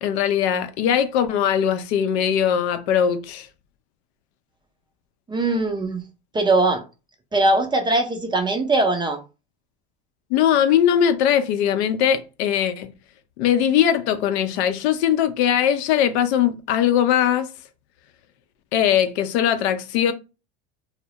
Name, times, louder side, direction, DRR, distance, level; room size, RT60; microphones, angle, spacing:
voice 1, 0.0-3.5 10.3-12.9 13.4-17.5 18.7-20.1, left 9 dB, 80° left, 0.5 m, -20 dB
voice 2, 5.3-6.0 6.3-6.8 7.3-9.2, right 2 dB, 15° right, 0.4 m, -21 dB
2.2 x 2.0 x 2.7 m
supercardioid pair, 105°, 33 cm